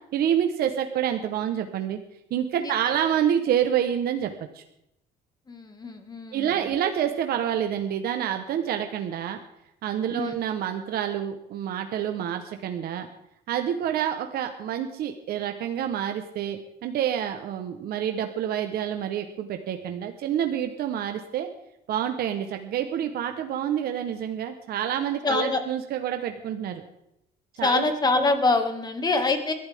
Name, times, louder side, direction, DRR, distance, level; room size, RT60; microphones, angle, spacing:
voice 1, 0.1-2.0 2.3-4.6 6.3-9.4 9.8-13.1 13.5-21.5 21.9-26.8 27.6-27.8, right 9 dB, 65° right, 6 dB, 1.2 m, -28 dB
voice 2, 2.6-2.9 5.5-6.5 10.1-10.4 25.2-25.6 27.6-29.5, left 3 dB, 25° left, 6 dB, 2.2 m, -25 dB
21.5 x 12.0 x 3.7 m, 0.81 s
cardioid pair, 110°, 17 cm